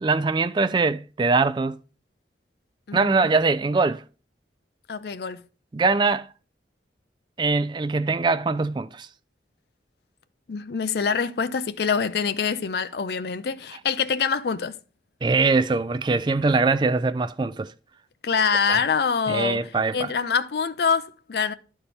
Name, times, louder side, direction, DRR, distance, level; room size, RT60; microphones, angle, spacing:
voice 1, 0.0-1.8 2.9-4.0 5.7-6.3 7.4-9.1 15.2-17.7 18.7-18.8 19.3-20.1, right 3 dB, 25° right, 0.3 m, -22 dB
voice 2, 2.9-3.3 4.9-5.4 10.5-14.8 18.2-19.6 19.9-21.5, left 6 dB, 60° left, 0.4 m, -25 dB
11.0 x 4.3 x 3.4 m
head